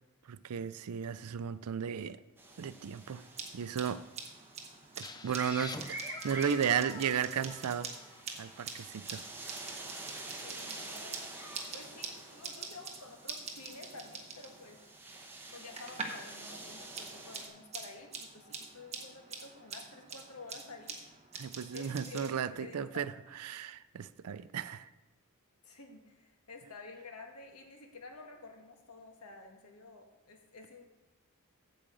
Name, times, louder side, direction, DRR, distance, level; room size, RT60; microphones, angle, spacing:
voice 1, 0.2-2.2 2.6-3.2 3.5-4.0 5.0-8.0 8.4-9.3 21.3-23.1 23.4-24.9, right 7 dB, 75° right, 15 dB, 0.4 m, -34 dB
sound 1, 2.4-17.5, right 2 dB, 10° right, 1.1 m, -48 dB
sound 2, 3.1-16.3 16.6-22.3, right 5 dB, 30° right, 1.1 m, -46 dB
sound 3, 5.0-8.7, left 3 dB, 20° left, 0.4 m, -47 dB
voice 2, 10.4-14.8 15.5-21.1 21.7-23.0 25.6-30.8, left 3 dB, 75° left, 3 dB, 1.5 m, -51 dB
8.6 x 5.0 x 7.6 m, 1.1 s
head